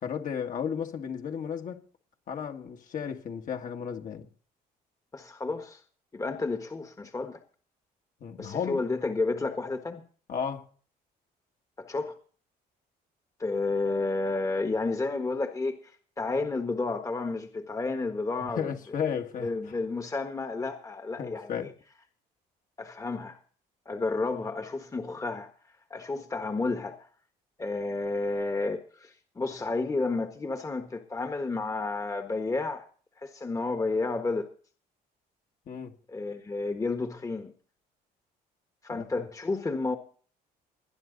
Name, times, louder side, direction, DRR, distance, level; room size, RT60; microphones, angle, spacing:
voice 1, 0.0-1.8 2.3-4.3 8.2-8.8 10.3-10.7 18.6-19.5 21.2-21.7 35.7-35.9 38.9-39.3, left 7 dB, 50° left, 2.0 m, -34 dB
voice 2, 5.1-5.8 6.1-7.4 8.4-10.0 11.8-12.2 13.4-19.1 19.4-21.7 22.8-23.4 23.8-25.5 25.9-27.1 27.6-32.9 33.2-34.5 36.1-37.5 38.8-40.0, left 3 dB, 20° left, 1.5 m, -31 dB
20.5 x 10.0 x 4.0 m
cardioid pair, 110°, 17 cm